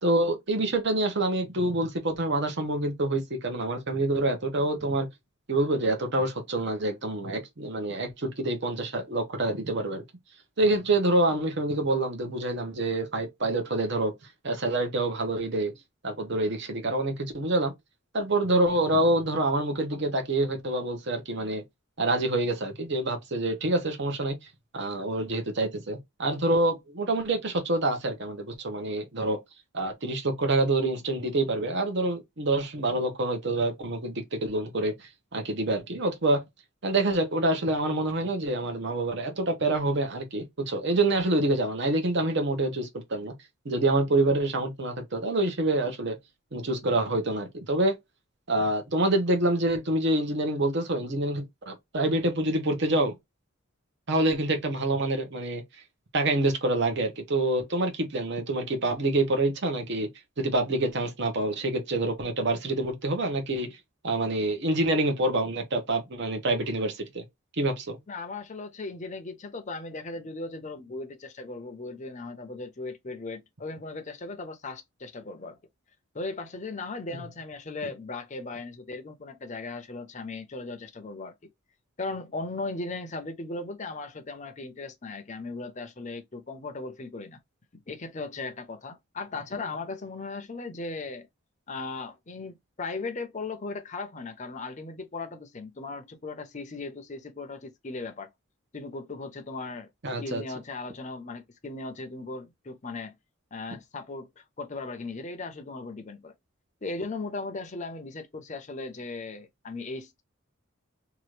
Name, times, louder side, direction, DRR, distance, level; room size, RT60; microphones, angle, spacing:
voice 1, 0.0-5.1 5.5-10.0 10.6-14.1 14.4-15.7 16.0-17.7 18.1-21.6 22.0-24.4 24.7-29.4 29.7-36.4 36.8-43.3 43.6-46.2 46.5-48.0 48.5-53.1 54.1-55.6 56.1-60.1 60.4-63.7 64.0-67.2 67.6-68.0 100.0-100.4, right 2 dB, 55° right, 0.9 m, -26 dB
voice 2, 68.1-75.6 76.1-81.3 82.0-87.4 87.9-91.3 91.7-98.3 98.7-99.9 100.2-103.1 103.5-106.3 106.8-110.2, left 3 dB, 35° left, 0.6 m, -37 dB
2.9 x 2.4 x 3.1 m
head